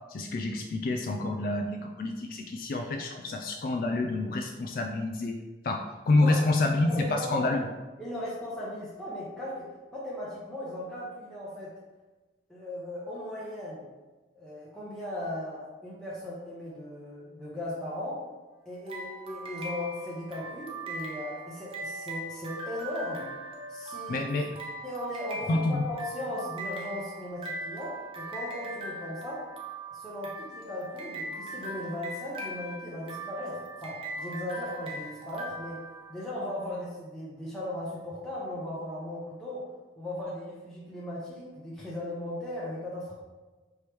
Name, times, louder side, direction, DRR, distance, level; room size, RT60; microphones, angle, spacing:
voice 1, 0.1-5.4 5.6-7.7 24.1-24.5 25.5-25.8, left 2 dB, 55° left, 3 dB, 0.3 m, -28 dB
voice 2, 6.2-6.5 6.9-7.6 8.0-9.7 9.9-11.7 12.5-13.8 14.3-18.2 18.7-23.3 23.7-24.2 24.8-29.5 29.9-35.8 36.1-39.6 40.0-43.1, left 1 dB, 5° left, -8 dB, 0.7 m, -37 dB
sound 1, 18.9-36.5, right 1 dB, 30° right, 0.6 m, -40 dB
4.6 x 3.0 x 3.4 m, 1.2 s
head